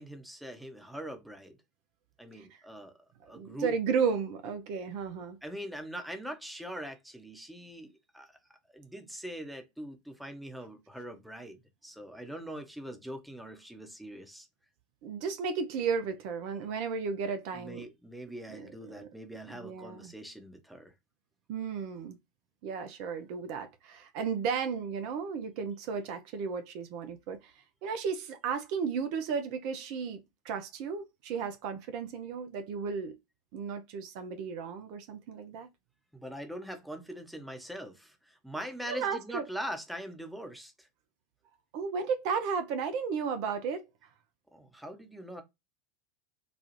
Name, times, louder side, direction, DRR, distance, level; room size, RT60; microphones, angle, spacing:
voice 1, 0.0-1.6 2.2-2.9 3.3-3.8 5.4-8.3 8.7-14.5 17.5-20.9 36.1-40.9 44.5-45.4, equal, ahead, 0.8 m, -42 dB
voice 2, 3.2-5.4 15.0-17.8 18.5-18.7 18.9-19.1 19.5-20.1 21.5-22.2 22.6-33.2 33.5-35.7 38.9-39.4 41.7-43.8, right 6 dB, 55° right, 0.6 m, -34 dB
3.9 x 2.3 x 3.0 m
figure-of-eight pair, 80°, 0 cm